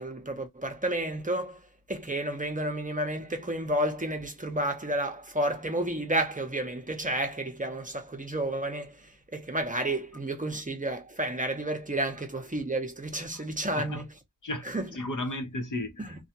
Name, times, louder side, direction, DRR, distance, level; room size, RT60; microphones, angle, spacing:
voice 1, 0.0-1.6 1.9-14.1 14.6-14.9 16.0-16.2, right 1 dB, 20° right, 0.7 m, -31 dB
voice 2, 14.4-16.3, left 1 dB, 60° left, 0.9 m, -35 dB
2.3 x 2.3 x 2.8 m
cardioid pair, 45°, 36 cm